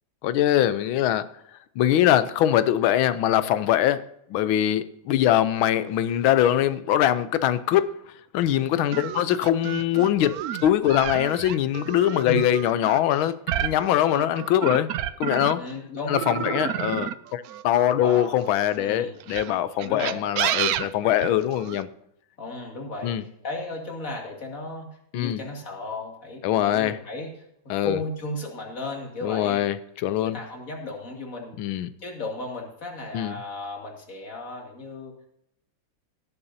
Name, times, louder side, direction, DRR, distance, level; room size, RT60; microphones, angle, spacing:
voice 1, 0.2-1.2 1.8-4.0 4.3-7.9 8.3-14.9 15.2-15.6 16.1-21.9 23.0-23.2 25.1-25.4 26.4-27.0 27.7-28.0 29.2-30.4 31.6-31.9 33.1-33.4, left 11 dB, 85° left, 1.5 m, -22 dB
sound 1, 8.9-15.7 16.1-18.5 19.2-21.8, right 11 dB, 85° right, 0.8 m, -30 dB
voice 2, 15.5-16.8 17.9-18.4 18.8-19.2 19.8-20.2 22.4-27.3 27.6-29.6 30.2-31.6 32.0-35.3, left 2 dB, 40° left, 2.8 m, -35 dB
18.0 x 9.9 x 2.7 m
omnidirectional pair, 2.2 m